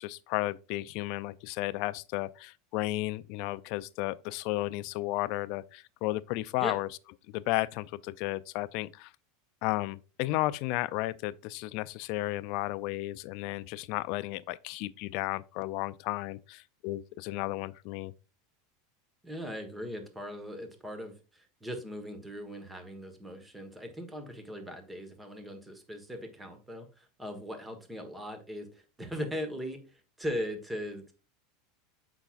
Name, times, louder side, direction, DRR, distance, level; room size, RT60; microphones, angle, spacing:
voice 1, 0.0-6.9 7.3-9.1 9.6-18.1, left 18 dB, 55° left, 0.4 m, -33 dB
voice 2, 19.2-31.1, equal, 10° right, 1.3 m, -39 dB
7.8 x 5.8 x 2.5 m
supercardioid pair, 135°, 0 cm